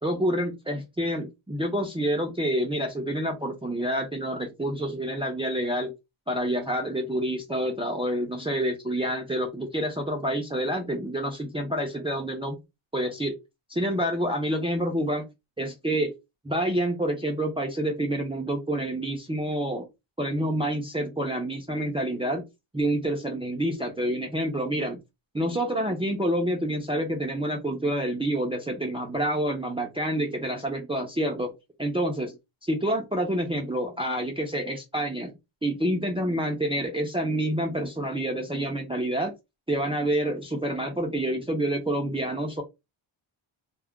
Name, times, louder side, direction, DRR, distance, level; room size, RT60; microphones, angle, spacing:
voice 1, 0.0-5.9 6.3-12.6 12.9-13.3 13.7-15.3 15.6-16.1 16.4-19.9 20.2-22.4 22.7-25.0 25.3-31.5 31.8-32.3 32.7-35.3 35.6-39.3 39.7-42.6, right 1 dB, 10° right, 2 dB, 0.5 m, -28 dB
2.3 x 2.1 x 3.5 m, 0.22 s
wide cardioid pair, 145°, 49 cm